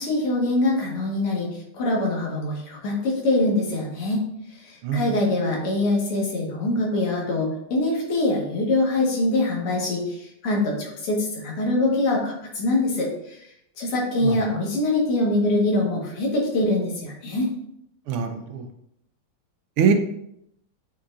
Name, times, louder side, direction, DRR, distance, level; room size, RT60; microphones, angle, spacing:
voice 1, 0.0-4.2 4.6-13.4 13.8-17.5, left 2 dB, 85° left, -2 dB, 2.4 m, -24 dB
voice 2, 18.1-18.7 19.8-19.9, right 7 dB, 80° right, 6 dB, 1.6 m, -23 dB
8.4 x 4.6 x 2.5 m, 0.76 s
omnidirectional pair, 2.4 m